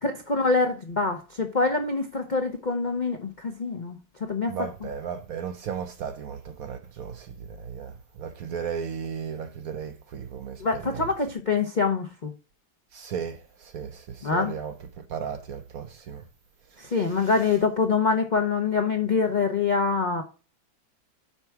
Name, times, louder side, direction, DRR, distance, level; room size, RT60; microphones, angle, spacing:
voice 1, 0.0-4.0 4.3-4.6 10.6-12.3 14.2-14.5 16.8-20.2, left 4 dB, 50° left, 0.5 m, -25 dB
voice 2, 4.5-7.3 7.6-11.0 12.9-14.7 15.1-16.2, right 7 dB, 65° right, 1.0 m, -35 dB
5.7 x 4.5 x 5.8 m
omnidirectional pair, 2.0 m